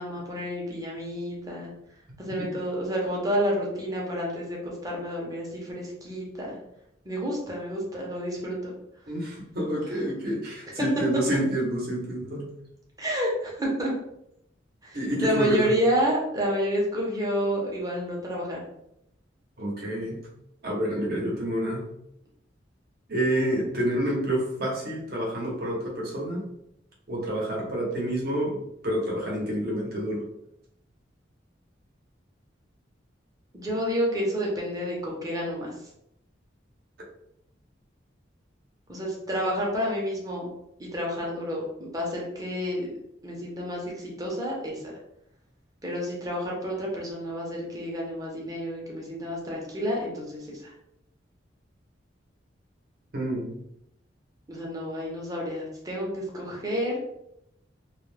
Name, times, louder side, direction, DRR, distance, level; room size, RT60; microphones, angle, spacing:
voice 1, 0.0-1.7 2.2-6.6 7.0-8.7 13.0-13.9 14.8-18.6 33.5-35.7 38.9-40.5 40.8-42.9 43.2-44.8 45.8-50.7 54.5-57.0, equal, 20° right, -3 dB, 0.7 m, -29 dB
voice 2, 9.1-12.5 14.9-15.7 19.6-20.2 20.6-21.8 23.1-26.5 27.1-30.2 53.1-53.6, right 1 dB, 55° right, -2 dB, 0.8 m, -28 dB
2.3 x 2.1 x 3.2 m, 0.80 s
head